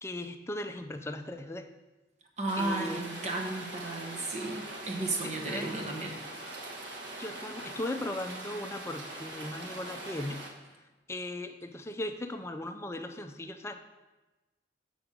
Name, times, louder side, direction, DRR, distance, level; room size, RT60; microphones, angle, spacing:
voice 1, 0.0-1.7 2.6-3.1 5.2-5.7 7.2-10.4 11.1-13.7, left 1 dB, 15° left, 6 dB, 0.4 m, -38 dB
voice 2, 2.4-6.2, right 2 dB, 40° right, 1 dB, 1.1 m, -34 dB
Rain, 2.5-10.5, right 2 dB, 80° right, 1.3 m, -42 dB
7.0 x 6.1 x 5.1 m, 1.1 s
head